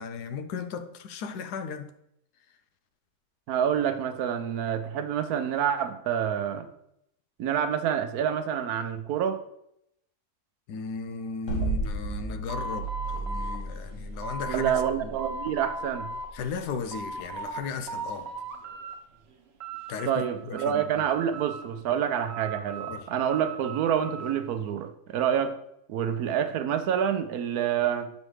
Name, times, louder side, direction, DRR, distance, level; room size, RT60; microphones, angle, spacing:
voice 1, 0.0-1.9 10.7-15.1 16.3-18.3 19.9-21.0 22.9-23.1, left 5 dB, 85° left, 1.2 m, -36 dB
voice 2, 3.5-6.7 7.4-9.4 11.6-11.7 14.5-16.1 20.1-25.6 25.9-28.1, right 9 dB, 75° right, 1.1 m, -27 dB
sound 1, 11.5-17.6, right 2 dB, 50° left, 1.8 m, -34 dB
sound 2, 12.5-14.9 15.2-16.3 16.7-17.6 17.9-19.0 19.3-20.3 20.6-21.8 22.3-24.4, right 2 dB, 50° right, 0.9 m, -38 dB
7.1 x 5.4 x 3.2 m
omnidirectional pair, 1.7 m